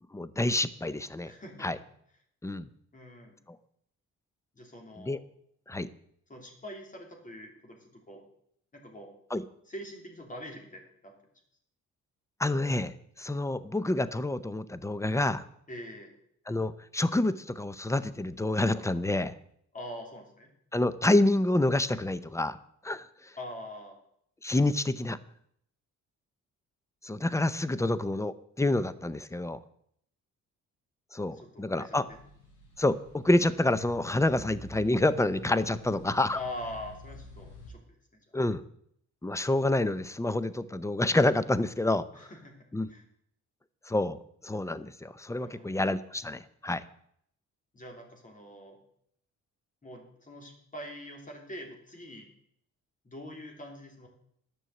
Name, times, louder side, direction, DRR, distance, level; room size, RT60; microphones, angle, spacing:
voice 1, 0.1-1.3 1.6-1.8 2.4-2.7 5.0-5.2 5.7-5.9 9.3-9.4 12.4-15.4 16.5-19.3 20.7-22.6 22.8-23.0 24.4-25.2 27.0-29.6 31.1-32.1 32.8-36.4 38.3-38.6 39.2-42.0 42.7-42.9 43.9-44.2 44.4-46.8, left 2 dB, 10° left, 15 dB, 0.6 m, -28 dB
voice 2, 1.2-1.7 2.9-3.4 4.5-5.2 6.3-8.2 8.7-9.1 9.7-11.1 15.7-16.1 19.7-20.5 23.4-24.0 31.3-32.0 36.3-37.8 42.1-42.6 42.9-43.0 45.4-45.8 47.7-48.8 49.8-52.3 53.0-54.1, left 1 dB, 25° left, 1 dB, 3.2 m, -43 dB
sound 1, 32.1-37.7, left 2 dB, 80° left, 4.4 m, -49 dB
11.0 x 6.3 x 7.8 m, 0.70 s
cardioid pair, 90°, 30 cm